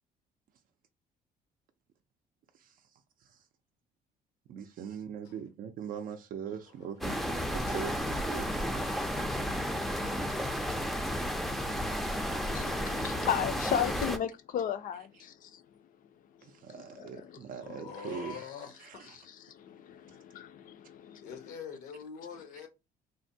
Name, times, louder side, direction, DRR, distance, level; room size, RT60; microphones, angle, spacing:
voice 1, 4.5-8.4 15.1-15.2 16.4-18.5 18.8-19.2, right 8 dB, 55° right, 0.4 m, -41 dB
voice 2, 6.5-6.9 7.7-7.9 17.6-19.0 21.2-22.7, left 7 dB, 85° left, 0.9 m, -45 dB
sound 1, 7.0-14.2, equal, ahead, 0.4 m, -32 dB
voice 3, 12.5-15.6 17.0-17.4 19.5-21.3, left 9 dB, 55° left, 0.5 m, -35 dB
3.4 x 2.1 x 2.6 m
cardioid pair, 110°, 17 cm